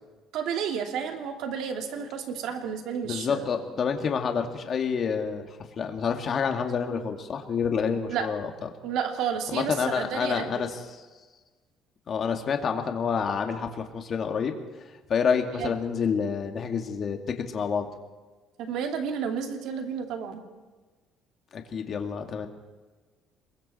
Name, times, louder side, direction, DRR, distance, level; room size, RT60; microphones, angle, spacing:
voice 1, 0.3-3.5 8.0-8.3 8.8-10.7 15.5-15.8 18.6-20.4, right 7 dB, 70° right, 4 dB, 2.8 m, -31 dB
voice 2, 3.0-5.5 5.8-8.7 9.5-10.7 12.1-14.5 15.1-17.2 17.5-17.9 21.5-22.5, left 6 dB, 40° left, 4 dB, 2.3 m, -28 dB
27.5 x 22.0 x 4.5 m, 1.3 s
cardioid pair, 145°, 0 cm